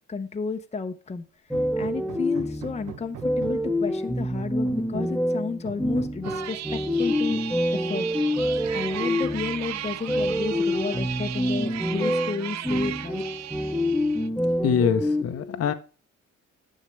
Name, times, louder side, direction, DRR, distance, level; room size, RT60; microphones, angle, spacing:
voice 1, 0.1-1.2 1.8-7.4 7.7-8.1 8.7-13.2 15.2-15.7, left 5 dB, 20° left, 0.7 m, -32 dB
sound 1, 1.5-15.2, left 1 dB, ahead, 1.0 m, -27 dB
Hammer, 1.5-3.8 4.4-5.2 5.6-6.6 7.6-7.7 8.1-8.2 8.6-9.3 9.8-10.4 10.7-11.4, right 8 dB, 85° right, 1.2 m, -44 dB
sound 2, 6.2-14.3, right 12 dB, 65° right, 0.6 m, -36 dB
voice 2, 14.6-15.7, left 8 dB, 55° left, 0.8 m, -24 dB
9.9 x 6.5 x 3.1 m
cardioid pair, 90°, 30 cm